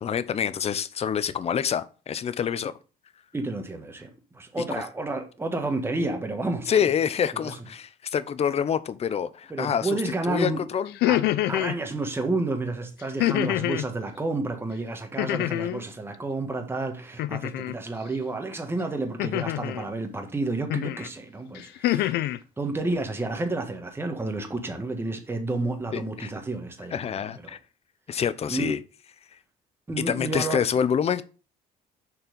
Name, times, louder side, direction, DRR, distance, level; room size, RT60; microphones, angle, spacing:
voice 1, 0.0-2.8 6.7-10.0 10.3-10.9 25.9-26.3 26.9-27.6 28.1-28.8 30.0-31.2, left 8 dB, 40° left, 0.7 m, -26 dB
voice 2, 3.3-6.7 7.4-7.6 9.5-10.6 11.0-11.2 11.5-27.6 28.5-28.8 29.9-30.6, right 2 dB, 15° right, 1.5 m, -30 dB
sound 1, 10.9-11.8 13.2-13.9 15.2-15.8 17.2-17.8 19.2-19.8 20.7-21.1 21.5-22.4, left 14 dB, 80° left, 0.6 m, -26 dB
6.5 x 4.5 x 5.1 m
cardioid pair, 110°, 17 cm